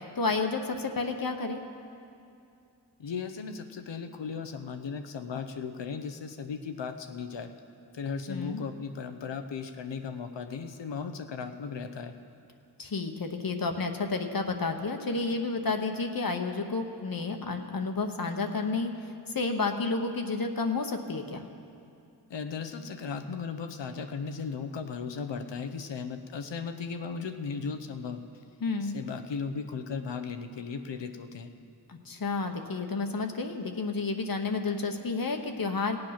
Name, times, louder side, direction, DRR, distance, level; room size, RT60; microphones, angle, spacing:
voice 1, 0.2-1.6 8.3-8.6 12.8-18.9 19.3-21.4 28.6-28.9 31.9-36.0, left 3 dB, 55° left, 4 dB, 1.0 m, -31 dB
voice 2, 3.0-7.5 7.9-12.1 22.3-28.2 28.8-31.5, left 5 dB, 90° left, 8 dB, 0.8 m, -36 dB
17.5 x 7.9 x 5.8 m, 2.5 s
cardioid pair, 45°, 42 cm